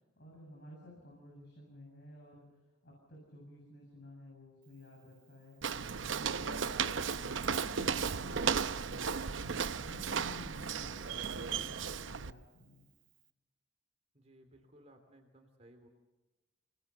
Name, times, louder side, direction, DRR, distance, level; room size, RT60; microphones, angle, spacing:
voice 1, 0.2-2.5 2.8-5.6 6.0-9.5 9.8-12.9, left 1 dB, 60° left, -2 dB, 7.9 m, -53 dB
Walk footsteps, 5.6-12.3, right 6 dB, 80° right, 0.7 m, -35 dB
voice 2, 14.1-15.9, right 1 dB, 35° right, 4 dB, 3.0 m, -60 dB
28.5 x 20.0 x 6.9 m, 1.1 s
head